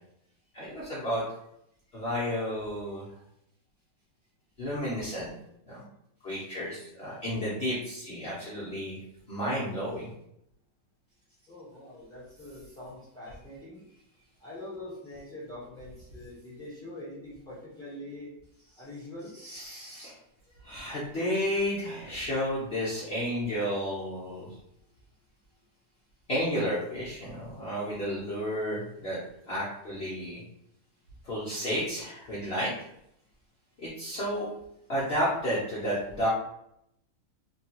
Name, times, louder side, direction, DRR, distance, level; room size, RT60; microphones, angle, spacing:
voice 1, 0.5-1.2 1.9-3.1 4.6-5.3 5.7-5.8 6.2-9.0 9.3-10.1 19.3-20.2 20.6-24.5 26.3-29.2 29.5-30.4 31.2-32.9 33.8-34.5 34.9-36.3, equal, 70° left, -8 dB, 0.5 m, -32 dB
voice 2, 11.5-13.8 14.4-18.3 18.8-19.3, left 1 dB, 5° left, -9 dB, 0.3 m, -44 dB
3.3 x 2.3 x 2.8 m, 0.78 s
omnidirectional pair, 2.1 m